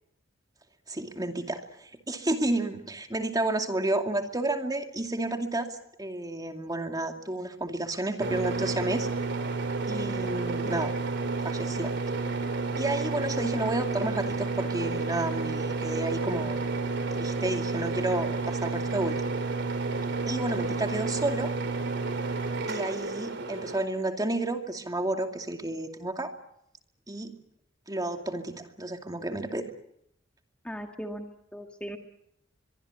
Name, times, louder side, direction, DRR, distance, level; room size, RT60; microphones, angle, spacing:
voice 1, 0.9-5.7 6.0-9.1 9.9-10.9 11.4-12.0 12.8-16.6 17.1-19.2 20.3-21.5 22.7-26.3 27.1-27.3 27.9-29.6, right 2 dB, 20° right, 5 dB, 2.5 m, -31 dB
sound 1, 8.2-23.9, right 3 dB, 60° right, 3.4 m, -31 dB
voice 2, 30.6-32.0, equal, 5° left, 4 dB, 1.7 m, -38 dB
24.0 x 23.0 x 8.6 m, 0.77 s
head